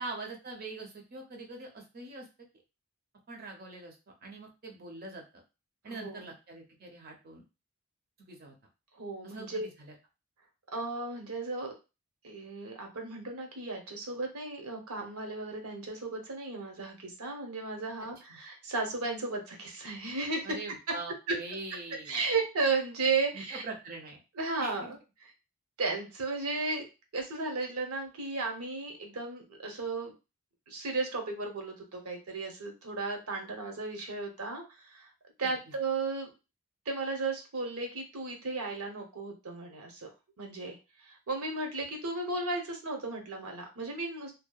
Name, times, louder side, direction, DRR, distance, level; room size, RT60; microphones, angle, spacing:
voice 1, 0.0-2.3 3.3-4.0 4.2-5.2 5.8-7.4 8.2-8.6 9.2-9.9 18.3-18.4 20.4-22.2 23.3-24.2 24.6-24.9 35.4-35.5, right 3 dB, 40° right, 2 dB, 0.5 m, -43 dB
voice 2, 5.9-6.3 8.9-9.7 10.7-11.7 12.2-20.6 22.0-23.6 24.4-25.3 25.8-26.9 27.1-30.1 30.7-35.1 35.4-36.3 36.9-40.1 40.4-44.3, right 3 dB, 80° right, 3 dB, 0.7 m, -35 dB
2.7 x 2.1 x 2.3 m, 0.28 s
head